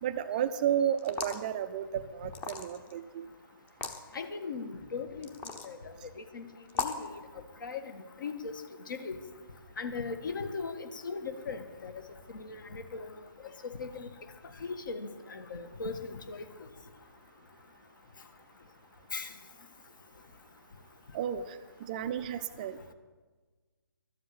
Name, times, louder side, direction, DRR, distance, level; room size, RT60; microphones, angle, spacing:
voice 1, 0.0-3.3 21.1-22.9, right 9 dB, 20° right, 11 dB, 0.4 m, -32 dB
sound 1, 1.0-1.5 2.3-2.9 3.7-4.0 5.2-5.7 6.7-7.1, left 5 dB, 15° left, 0.8 m, -36 dB
voice 2, 4.1-5.3 5.6-5.8 6.3-6.4 6.8-7.2 7.6-7.8 8.2-8.5 8.9-9.2 9.8-11.9 12.3-13.1 13.6-14.1 14.6-16.5 19.1-19.3, left 4 dB, 60° left, 8 dB, 1.6 m, -38 dB
12.5 x 7.7 x 8.8 m, 1.4 s
hypercardioid pair, 150°, 12 cm